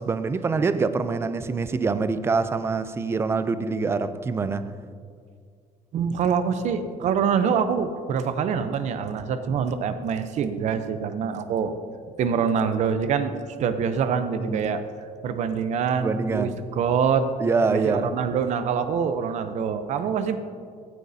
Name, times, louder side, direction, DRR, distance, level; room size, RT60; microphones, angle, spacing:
voice 1, 0.0-4.7 14.4-14.6 16.0-16.6 17.4-18.1, right 4 dB, 15° right, 12 dB, 0.3 m, -25 dB
voice 2, 5.9-11.8 12.2-13.3 13.6-14.8 15.2-17.3 17.7-20.4, right 6 dB, 55° right, 10 dB, 0.6 m, -25 dB
15.0 x 9.1 x 2.7 m, 2.1 s
cardioid pair, 170°, 15 cm